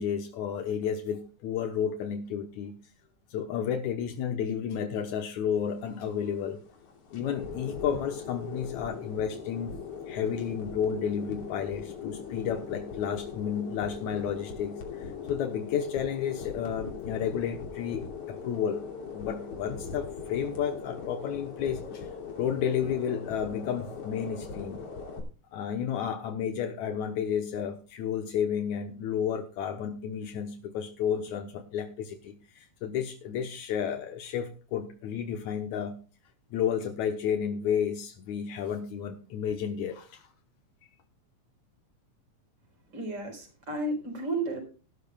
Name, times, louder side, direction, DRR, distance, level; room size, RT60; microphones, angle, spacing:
voice 1, 0.0-2.8 3.3-6.6 7.1-9.7 10.1-18.9 19.1-22.1 22.4-24.8 25.5-36.0 36.5-40.3, left 8 dB, 75° left, 6 dB, 2.3 m, -32 dB
sound 1, 5.5-25.2, left 6 dB, 55° left, 3.7 m, -40 dB
voice 2, 42.9-44.6, right 2 dB, 35° right, 3 dB, 4.8 m, -32 dB
17.5 x 12.0 x 2.3 m, 0.35 s
omnidirectional pair, 3.4 m